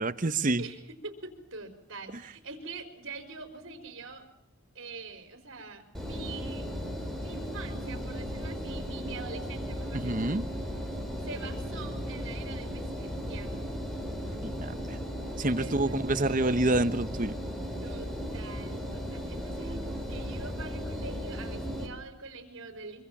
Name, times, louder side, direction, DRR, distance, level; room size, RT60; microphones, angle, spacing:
voice 1, 0.0-0.7 9.9-10.4 14.4-15.0 15.4-17.4, right 2 dB, 35° right, 12 dB, 0.9 m, -28 dB
voice 2, 0.6-4.3 4.7-6.7 7.2-10.3 11.2-13.7 15.6-16.0 17.8-23.0, right 3 dB, 60° right, 7 dB, 4.8 m, -44 dB
Engine, 5.9-21.9, equal, ahead, 4.2 m, -36 dB
25.5 x 25.0 x 7.3 m, 0.73 s
head